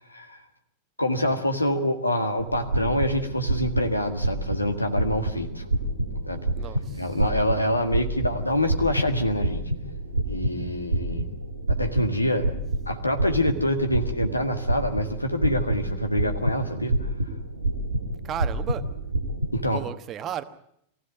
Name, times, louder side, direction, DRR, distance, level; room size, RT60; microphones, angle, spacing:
voice 1, 1.0-5.6 6.3-6.5 7.0-9.6 10.2-11.2 11.7-12.5 12.9-17.0 19.5-19.8, left 1 dB, 85° left, 1.8 m, -26 dB
sound 1, 2.4-19.7, right 1 dB, 80° right, 2.2 m, -28 dB
voice 2, 6.6-7.2 18.2-18.9 19.7-20.4, right 10 dB, 30° right, 1.1 m, -34 dB
23.0 x 15.5 x 7.8 m
figure-of-eight pair, 90°, 0 cm